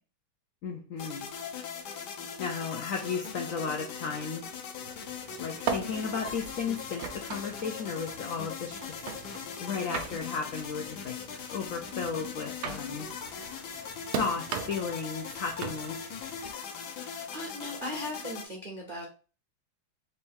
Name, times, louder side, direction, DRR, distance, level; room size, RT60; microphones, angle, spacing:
voice 1, 0.6-1.3 2.4-4.4 5.4-8.9 9.6-11.2 11.5-13.1 14.2-16.0, left 5 dB, 85° left, 1 dB, 0.7 m, -34 dB
sound 1, 1.0-18.4, left 7 dB, 65° left, 1.1 m, -40 dB
sound 2, 4.8-16.5, right 7 dB, 85° right, 1.5 m, -40 dB
voice 2, 17.0-19.0, equal, 55° right, -1 dB, 0.5 m, -39 dB
4.2 x 2.6 x 3.6 m, 0.36 s
omnidirectional pair, 2.3 m